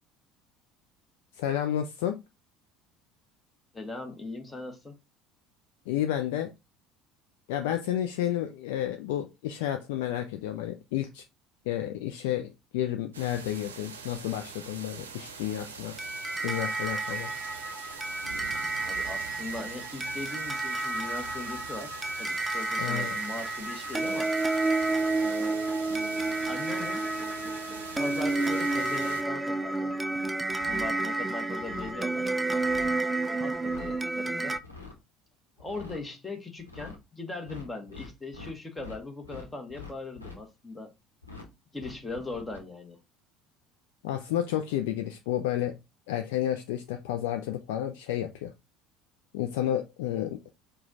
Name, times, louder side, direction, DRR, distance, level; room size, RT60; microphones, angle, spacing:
voice 1, 1.3-2.2 5.9-6.5 7.5-11.2 11.7-16.0 16.4-17.3 22.8-23.2 44.0-45.7 46.1-48.5 49.3-50.5, left 11 dB, 65° left, 0.4 m, -31 dB
voice 2, 3.7-5.0 18.8-24.3 25.2-25.6 26.5-27.0 28.0-29.9 30.6-32.3 33.2-34.6 35.6-40.9 41.7-43.0, left 2 dB, 15° left, 1.1 m, -39 dB
sound 1, 13.1-29.2, right 5 dB, 75° right, 0.6 m, -43 dB
sound 2, 16.0-34.6, right 2 dB, 15° right, 0.4 m, -30 dB
sound 3, 30.5-31.0 31.5-32.0 32.5-33.0 33.5-34.0 34.5-35.0 35.6-36.0 36.6-37.0 37.4-39.0 39.2-40.4 41.2-41.5 41.8-42.6, left 4 dB, 90° left, 0.9 m, -45 dB
4.8 x 2.3 x 3.9 m
figure-of-eight pair, 65°, 0 cm